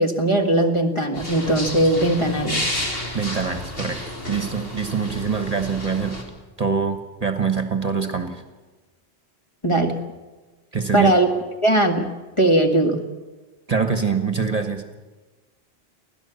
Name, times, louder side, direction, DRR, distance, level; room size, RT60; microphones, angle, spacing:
voice 1, 0.0-2.7 9.6-10.0 10.9-11.3 11.6-12.1 12.4-13.1, right 1 dB, 30° left, 3 dB, 1.8 m, -19 dB
sound 1, 1.1-6.2, left 1 dB, 60° left, 3.3 m, -31 dB
voice 2, 3.1-6.2 6.6-8.4 10.7-11.1 13.7-14.9, right 5 dB, 35° right, 7 dB, 1.4 m, -24 dB
24.5 x 16.5 x 7.0 m, 1.2 s
omnidirectional pair, 1.1 m